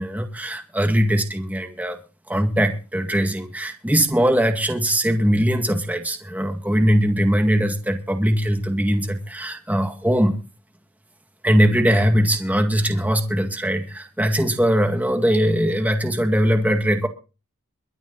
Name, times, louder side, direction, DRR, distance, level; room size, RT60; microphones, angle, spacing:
voice 1, 0.0-2.0 2.3-10.4 11.4-17.1, equal, 5° right, 5 dB, 2.0 m, -21 dB
23.5 x 9.0 x 4.0 m, 0.33 s
head